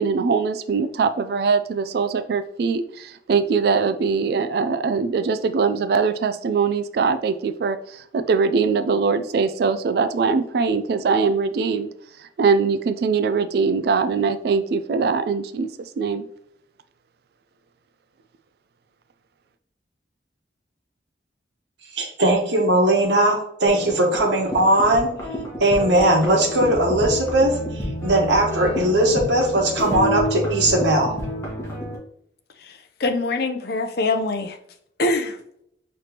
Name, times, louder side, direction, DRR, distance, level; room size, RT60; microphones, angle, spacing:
voice 1, 0.0-11.9 12.2-15.7 16.0-16.3, right 5 dB, 60° right, 10 dB, 0.3 m, -22 dB
voice 2, 21.9-25.2 25.6-31.1, right 1 dB, 85° right, 1 dB, 1.2 m, -19 dB
sound 1, 23.6-32.0, equal, 15° left, 1.3 m, -29 dB
voice 3, 32.6-34.6 35.0-35.4, left 2 dB, 60° left, 6 dB, 0.6 m, -24 dB
5.8 x 3.2 x 2.9 m, 0.72 s
head